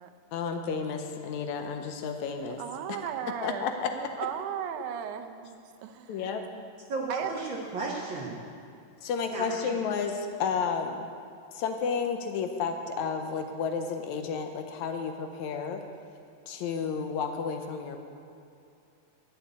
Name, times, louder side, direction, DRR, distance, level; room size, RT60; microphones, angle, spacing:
voice 1, 0.3-2.6 3.4-3.9 6.1-6.4 9.0-11.1 11.5-15.8 16.5-18.0, left 6 dB, 75° left, 6 dB, 2.0 m, -31 dB
voice 2, 2.4-6.6 7.1-7.4, right 9 dB, 80° right, 8 dB, 2.1 m, -37 dB
voice 3, 6.9-8.5 9.3-9.8, right 3 dB, 55° right, -2 dB, 1.4 m, -34 dB
10.5 x 7.0 x 9.2 m, 2.5 s
omnidirectional pair, 3.5 m